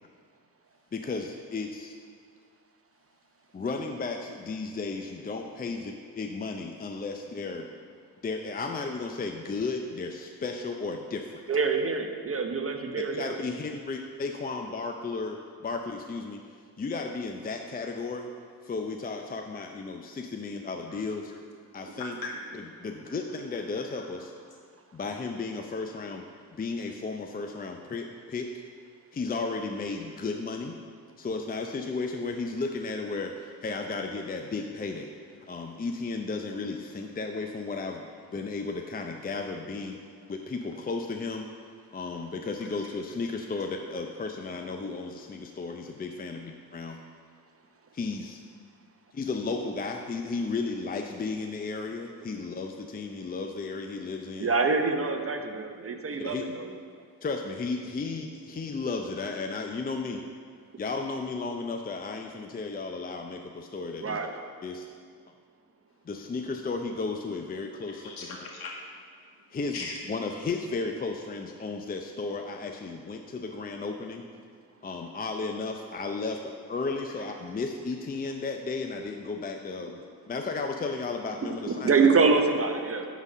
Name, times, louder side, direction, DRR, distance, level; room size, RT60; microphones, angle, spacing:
voice 1, 0.9-1.9 3.5-7.7 8.2-11.3 13.1-16.4 16.8-18.3 18.6-21.2 21.7-22.1 22.8-24.3 24.9-26.2 26.5-28.5 29.1-30.7 31.2-35.1 35.5-40.0 40.3-41.5 41.9-47.0 47.9-48.4 49.1-54.5 56.2-56.4 57.2-60.2 60.8-64.2 64.6-64.8 66.1-68.0 69.5-69.7 70.1-74.2 74.8-80.0 80.3-81.9, left 3 dB, 25° left, 3 dB, 0.5 m, -34 dB
voice 2, 2.9-3.6 20.9-21.4 22.0-22.4 22.6-22.9 23.4-23.5 23.7-24.3 24.7-25.0 42.6-42.9 43.6-43.7 56.0-56.2 56.9-57.2 65.9-66.0 67.9-70.1 71.3-71.4 77.1-77.5, left 3 dB, 70° left, -1 dB, 1.8 m, -44 dB
voice 3, 11.5-13.4 54.4-56.7 64.0-64.3 81.6-83.0, right 4 dB, 35° right, 5 dB, 0.8 m, -25 dB
9.5 x 4.1 x 6.1 m, 2.1 s
cardioid pair, 70°, 39 cm